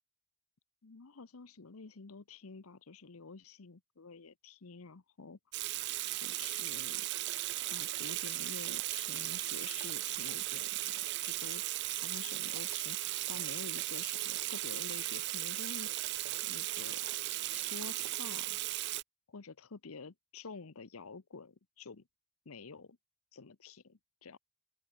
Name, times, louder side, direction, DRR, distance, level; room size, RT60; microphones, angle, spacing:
voice 1, 0.8-5.4 6.2-7.1 7.6-11.6 11.9-16.0 16.4-17.1 17.5-18.6 19.3-22.0 22.5-23.0 23.3-24.4, left 4 dB, 80° left, 0.9 m, -49 dB
Water tap faucet / Sink (filling or washing), 5.5-19.0, right 17 dB, 50° right, 0.4 m, -36 dB
open air
head